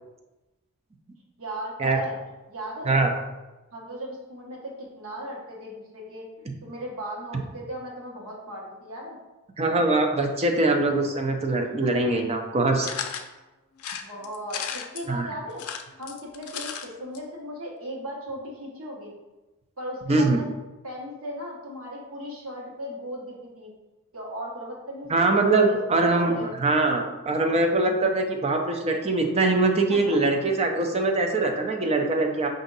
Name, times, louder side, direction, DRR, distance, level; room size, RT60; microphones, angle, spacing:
voice 1, 1.4-2.2 2.5-3.0 3.7-9.2 11.8-12.1 14.0-15.6 16.0-19.1 19.8-20.5 20.8-23.7 24.1-25.2 25.6-26.5 29.9-30.2, equal, 70° right, -3 dB, 1.3 m, -37 dB
voice 2, 9.6-12.9 15.1-15.3 20.1-20.4 25.1-32.5, right 2 dB, 30° right, 3 dB, 0.5 m, -23 dB
sound 1, 12.8-13.3 13.8-15.1 15.5-16.9 17.1-17.2 17.5-17.6, left 7 dB, 85° left, 0.4 m, -34 dB
4.8 x 2.6 x 4.0 m, 1.1 s
head